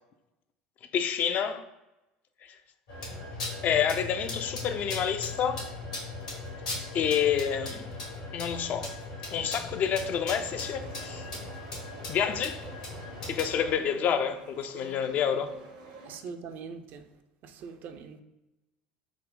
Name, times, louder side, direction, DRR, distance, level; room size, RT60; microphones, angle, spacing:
voice 1, 0.9-1.7 2.4-2.5 3.6-5.7 6.9-7.9 8.3-8.9 9.3-11.3 12.1-12.6 13.3-15.5, left 8 dB, 45° left, 0.4 m, -28 dB
sound 1, 2.9-13.7, left 2 dB, 80° left, 1.5 m, -38 dB
sound 2, 10.3-16.2, right 2 dB, 75° right, 0.9 m, -49 dB
voice 2, 16.1-17.1 17.4-18.2, right 5 dB, 50° right, 0.4 m, -42 dB
3.6 x 2.1 x 3.7 m
hypercardioid pair, 75°, 4 cm